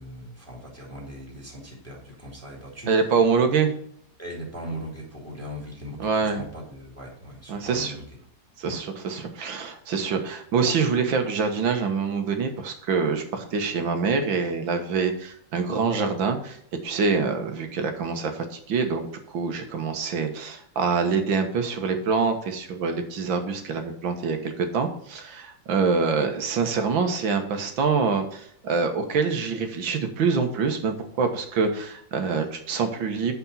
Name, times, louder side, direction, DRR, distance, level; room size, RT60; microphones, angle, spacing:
voice 1, 0.0-2.9 4.2-8.0 8.6-8.8, equal, 5° left, -2 dB, 2.8 m, -39 dB
voice 2, 2.9-3.7 6.0-6.4 7.5-8.0 8.6-16.6 16.8-33.3, right 5 dB, 85° right, 6 dB, 2.1 m, -25 dB
8.4 x 5.3 x 5.7 m, 0.68 s
omnidirectional pair, 2.0 m